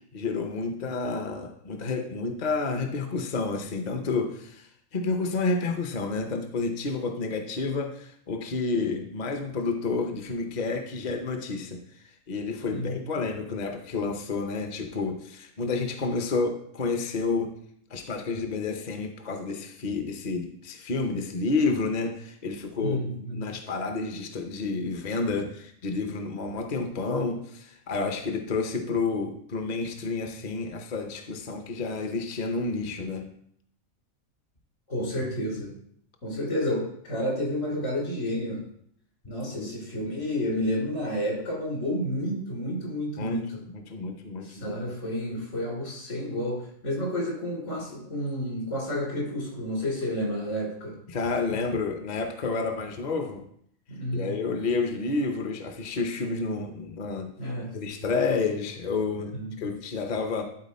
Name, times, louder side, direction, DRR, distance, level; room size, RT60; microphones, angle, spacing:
voice 1, 0.1-11.8 12.3-17.5 17.9-23.0 23.3-33.3 39.6-39.7 43.2-44.8 51.1-53.4 54.1-57.3 57.7-60.4, left 4 dB, 40° left, 4 dB, 0.7 m, -30 dB
voice 2, 12.7-13.0 22.8-23.4 34.9-35.7 36.2-38.6 39.3-43.6 44.4-51.0 53.9-54.4 57.4-57.7 59.3-59.7, left 1 dB, 70° left, -2 dB, 3.6 m, -30 dB
11.5 x 4.3 x 4.2 m, 0.68 s
omnidirectional pair, 1.4 m